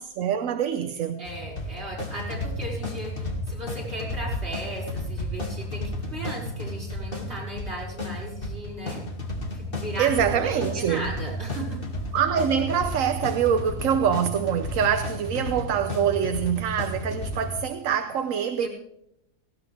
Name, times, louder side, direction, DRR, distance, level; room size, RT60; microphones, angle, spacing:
voice 1, 0.0-1.2 10.0-11.1 12.1-18.7, right 8 dB, 65° right, 1.1 m, -25 dB
sound 1, 1.2-17.6, left 1 dB, 35° left, 2.4 m, -33 dB
voice 2, 1.2-9.1 9.5-11.8 18.6-18.7, right 1 dB, 45° right, 6.8 m, -36 dB
19.0 x 17.5 x 3.4 m
omnidirectional pair, 1.6 m